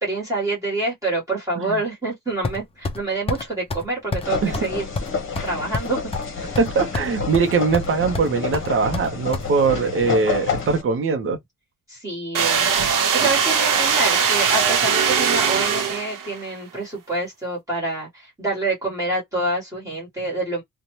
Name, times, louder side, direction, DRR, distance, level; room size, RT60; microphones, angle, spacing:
voice 1, 0.0-4.8 5.4-6.0 6.3-6.5 11.9-12.7 13.1-20.6, right 2 dB, 10° right, 1.3 m, -27 dB
sound 1, 2.4-3.0 3.3-3.4 3.7-3.9 4.1-4.3 4.5-4.7 5.0-6.3 6.5-7.1 7.3-7.9 8.1-9.5, left 3 dB, 20° left, 0.4 m, -27 dB
sound 2, 4.2-10.8, left 5 dB, 40° left, 0.9 m, -29 dB
voice 2, 6.6-11.4, right 4 dB, 40° right, 0.7 m, -21 dB
sound 3, 12.3-16.4, right 7 dB, 80° right, 0.8 m, -20 dB
2.6 x 2.2 x 3.0 m
wide cardioid pair, 170°, 32 cm